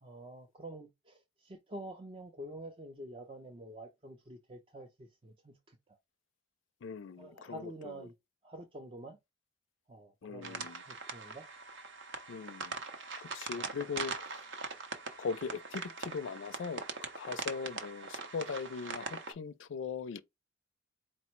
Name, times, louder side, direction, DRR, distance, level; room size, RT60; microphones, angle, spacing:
voice 1, 0.0-5.8 7.2-8.1 8.4-9.2 9.9-11.5 13.6-13.7, right 1 dB, 25° right, 0.4 m, -48 dB
voice 2, 6.8-8.1 10.2-10.8 12.3-12.8 13.2-14.4 15.2-16.8 17.2-20.2, left 5 dB, 70° left, 0.4 m, -40 dB
sound 1, 10.4-19.3, right 4 dB, 70° right, 0.7 m, -42 dB
4.3 x 2.1 x 4.4 m
head